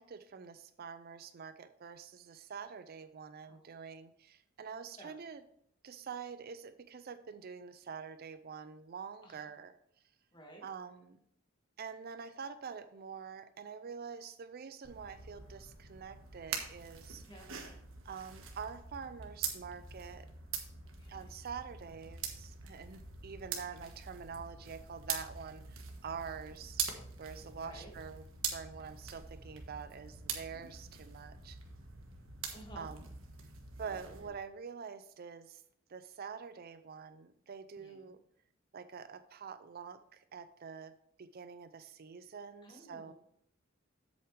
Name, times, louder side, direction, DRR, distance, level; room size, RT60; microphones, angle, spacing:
voice 1, 0.0-5.4 5.8-9.7 10.6-11.2 11.8-17.6 18.0-20.3 21.1-28.2 28.5-31.6 32.8-33.1 33.8-35.6 35.9-38.2 38.7-40.9 41.2-43.1, right 6 dB, 45° right, 11 dB, 0.4 m, -46 dB
voice 2, 10.3-10.6 16.5-16.6 17.3-17.5 21.0-21.3 27.6-27.9 32.5-32.9 37.8-38.1 42.6-43.1, right 1 dB, 25° left, 1 dB, 2.0 m, -54 dB
sound 1, 14.8-34.3, right 6 dB, 70° right, 1.4 m, -44 dB
7.9 x 7.9 x 3.3 m, 0.71 s
head